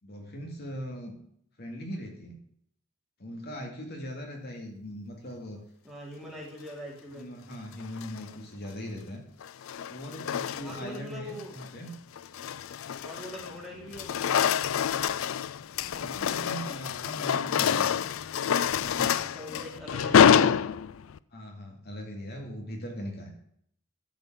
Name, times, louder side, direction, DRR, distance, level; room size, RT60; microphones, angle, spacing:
voice 1, 0.0-1.2 1.6-2.4 3.2-5.6 7.1-9.2 9.9-11.9 15.8-18.0 18.8-19.4 21.3-23.3, equal, 50° left, 1 dB, 2.2 m, -40 dB
voice 2, 3.4-3.8 5.8-7.5 10.6-11.6 13.0-14.5 19.3-20.6, equal, ahead, -3 dB, 3.0 m, -43 dB
sound 1, 7.8-8.3 9.4-11.0 11.4-11.7 12.2-13.6 13.9-21.2, left 8 dB, 80° left, 0.4 m, -27 dB
12.5 x 5.2 x 7.2 m, 0.68 s
head